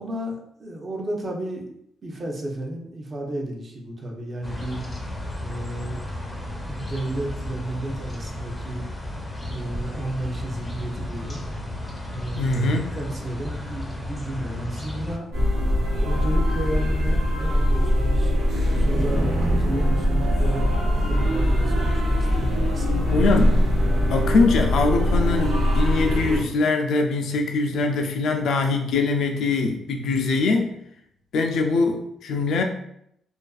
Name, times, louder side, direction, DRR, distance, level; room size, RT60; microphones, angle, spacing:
voice 1, 0.0-1.7 2.0-4.8 5.4-6.0 6.7-8.8 9.5-11.4 12.1-15.3 16.0-18.3 18.8-23.2, right 1 dB, 40° right, 0 dB, 0.6 m, -33 dB
sound 1, 4.4-15.2, left 1 dB, 10° left, 0.5 m, -33 dB
voice 2, 12.4-12.9 23.1-23.6 24.0-30.8 31.3-32.6, left 3 dB, 70° left, 3 dB, 0.3 m, -22 dB
sound 2, 15.3-26.4, equal, 85° right, 0.8 m, -21 dB
2.4 x 2.3 x 2.3 m, 0.74 s
cardioid pair, 90°, 0 cm